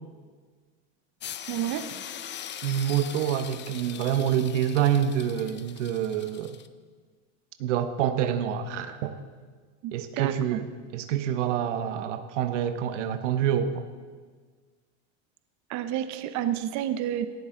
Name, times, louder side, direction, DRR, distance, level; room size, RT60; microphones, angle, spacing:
sound 1, 1.2-6.7, left 10 dB, 30° left, 0.7 m, -41 dB
voice 1, 1.5-2.0 9.8-10.6 15.7-17.3, right 11 dB, 50° right, 10 dB, 0.9 m, -30 dB
voice 2, 2.6-6.6 7.6-9.2 9.9-10.7 10.9-13.9, right 9 dB, 85° right, 9 dB, 1.1 m, -27 dB
18.0 x 12.0 x 3.9 m, 1.5 s
supercardioid pair, 110°, 36 cm